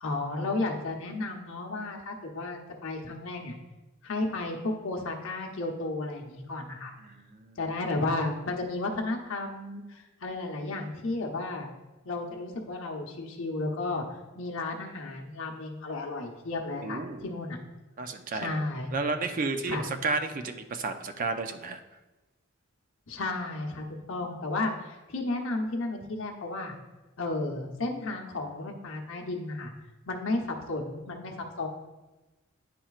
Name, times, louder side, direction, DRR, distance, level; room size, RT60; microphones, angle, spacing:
voice 1, 0.0-3.5 4.0-6.9 7.6-11.7 12.0-14.0 14.3-17.6 18.3-18.9 19.7-19.9 23.1-26.7 27.2-29.7 30.1-31.7, left 2 dB, 65° left, 1 dB, 0.9 m, -33 dB
voice 2, 7.0-7.6 16.8-17.2 18.0-18.6 18.9-21.8, right 3 dB, 40° right, 8 dB, 0.4 m, -32 dB
10.0 x 4.3 x 2.4 m, 1.1 s
head